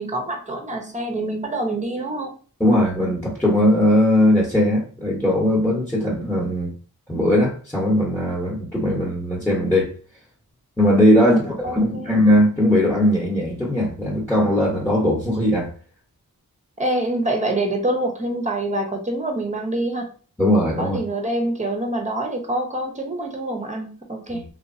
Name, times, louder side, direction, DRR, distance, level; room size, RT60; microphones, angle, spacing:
voice 1, 0.0-2.3 11.2-12.1 16.8-20.1 20.8-24.4, right 1 dB, 20° right, 3 dB, 0.7 m, -26 dB
voice 2, 2.6-6.7 7.1-9.9 10.8-15.7 20.4-21.0 24.3-24.4, left 1 dB, 5° left, -4 dB, 0.9 m, -19 dB
2.9 x 2.3 x 2.6 m, 0.40 s
wide cardioid pair, 50°, 37 cm